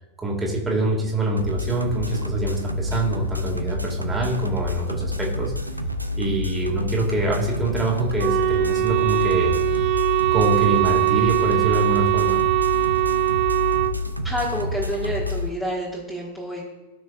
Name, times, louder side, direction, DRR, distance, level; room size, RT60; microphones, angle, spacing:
voice 1, 0.2-5.5 6.2-9.7 10.3-12.4, right 2 dB, 10° right, -2 dB, 2.1 m, -25 dB
sound 1, 1.4-15.5, left 1 dB, 85° right, 0.6 m, -28 dB
Wind instrument woodwind instrument, 8.2-13.9, right 16 dB, 45° right, 0.5 m, -21 dB
voice 2, 14.2-16.7, equal, 5° left, -6 dB, 1.8 m, -28 dB
15.0 x 6.1 x 2.5 m, 1.2 s
figure-of-eight pair, 90°, 0 cm